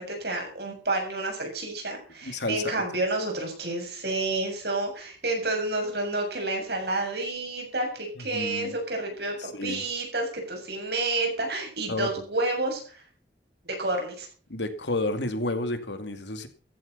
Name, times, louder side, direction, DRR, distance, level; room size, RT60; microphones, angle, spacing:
voice 1, 0.0-13.0 13.6-14.3, right 2 dB, 65° right, 2 dB, 7.5 m, -30 dB
voice 2, 2.2-2.8 8.2-8.7 9.4-9.8 11.9-12.1 14.5-16.5, left 2 dB, 85° left, 8 dB, 2.5 m, -31 dB
14.5 x 12.0 x 5.8 m, 0.39 s
head